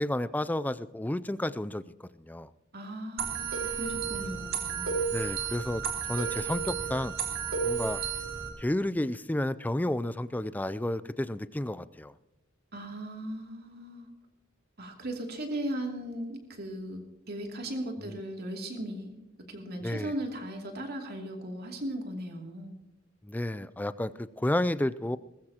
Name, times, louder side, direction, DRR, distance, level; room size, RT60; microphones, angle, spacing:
voice 1, 0.0-2.5 5.1-5.8 6.1-7.1 7.6-8.0 8.6-12.1 18.0-18.2 19.8-20.1 23.2-25.2, left 1 dB, 10° left, 15 dB, 0.4 m, -31 dB
voice 2, 2.7-4.9 5.4-5.6 12.7-14.1 14.8-17.0 17.3-19.1 19.5-22.7, right 1 dB, 50° right, 2 dB, 2.8 m, -37 dB
sound 1, 3.2-8.5, right 6 dB, 80° right, 3.1 m, -32 dB
20.0 x 15.0 x 2.9 m, 0.96 s
head